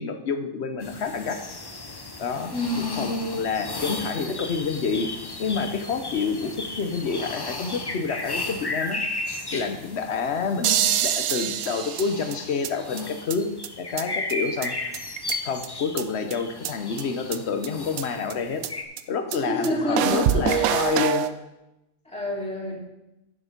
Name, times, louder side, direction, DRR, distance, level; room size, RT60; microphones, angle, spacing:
voice 1, 0.0-1.4 2.2-2.5 3.0-5.1 5.4-9.0 9.3-13.5 13.8-14.7 15.4-18.6 19.1-21.3, left 5 dB, 55° left, 7 dB, 1.0 m, -28 dB
sound 1, 0.8-18.8, left 2 dB, 25° left, 0.7 m, -35 dB
voice 2, 2.5-3.3 19.3-20.8 22.0-22.8, left 1 dB, 5° left, -6 dB, 2.5 m, -28 dB
sound 2, 10.6-12.7 13.0-13.1 13.3-13.4 13.6-13.7 14.0-14.1 14.3-14.4 14.6-14.7 14.9-15.7 16.0-16.1 16.3-16.4 16.6-16.7 17.0-17.1 17.3-17.4 17.6-17.7 18.0-18.1 18.3-18.4 18.6-18.7 19.0-19.1 19.3-19.4 19.6-19.7 20.0-21.3, right 10 dB, 90° right, 1.1 m, -25 dB
10.0 x 7.1 x 5.3 m, 0.95 s
omnidirectional pair, 1.4 m